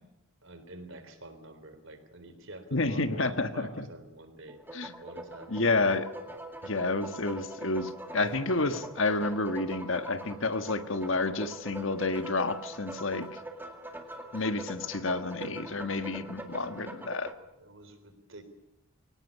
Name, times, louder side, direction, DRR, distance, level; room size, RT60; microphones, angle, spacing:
voice 1, 0.4-4.6 5.0-5.8 16.3-16.5 17.6-18.4, right 1 dB, 65° right, 9 dB, 3.7 m, -47 dB
voice 2, 2.7-3.9 4.7-4.9 5.5-6.1 6.6-13.4 14.3-17.3, left 3 dB, 65° left, 10 dB, 1.5 m, -30 dB
sound 1, 4.5-17.3, right 1 dB, 10° right, 2.1 m, -43 dB
23.5 x 18.0 x 8.6 m, 0.86 s
head